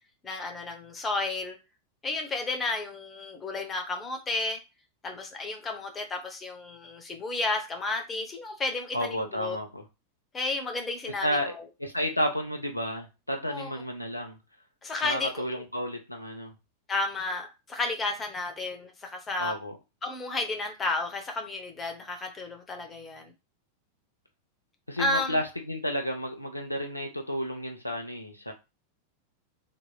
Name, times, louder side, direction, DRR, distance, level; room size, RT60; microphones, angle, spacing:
voice 1, 0.2-1.6 2.0-4.6 5.0-9.6 10.3-11.7 13.5-13.8 14.8-15.4 16.9-19.5 20.0-23.3 25.0-25.4, left 2 dB, 20° left, 0.8 m, -32 dB
voice 2, 8.9-9.8 11.2-11.5 11.8-14.4 15.0-16.5 19.4-19.8 24.9-28.5, equal, 85° left, 0.6 m, -31 dB
3.0 x 2.8 x 2.3 m
figure-of-eight pair, 90°, 0 cm